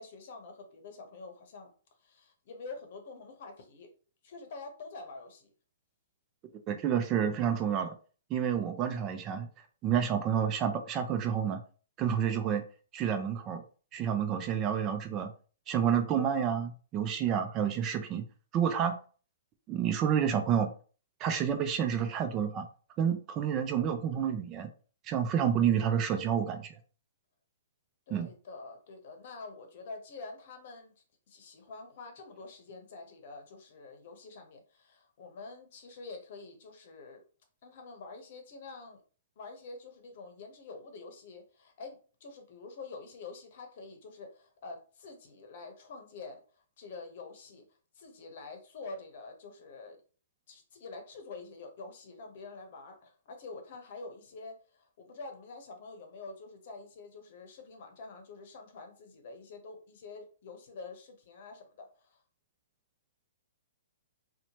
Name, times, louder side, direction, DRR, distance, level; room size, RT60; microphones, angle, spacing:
voice 1, 0.0-1.7 2.0-3.9 4.2-5.5 28.1-30.9 31.3-37.2 37.6-39.0 39.4-46.4 46.8-47.6 48.0-50.0 50.5-62.2, left 3 dB, 55° left, 4 dB, 0.8 m, -47 dB
voice 2, 6.7-7.9 8.3-9.5 9.8-11.6 12.0-12.6 12.9-13.6 13.9-15.3 15.7-18.2 18.5-18.9 19.7-20.7 21.2-22.7 23.0-24.7 25.1-26.7 28.1-28.3, right 8 dB, 30° right, 7 dB, 0.4 m, -29 dB
2.8 x 2.1 x 2.9 m, 0.39 s
hypercardioid pair, 125°, 0 cm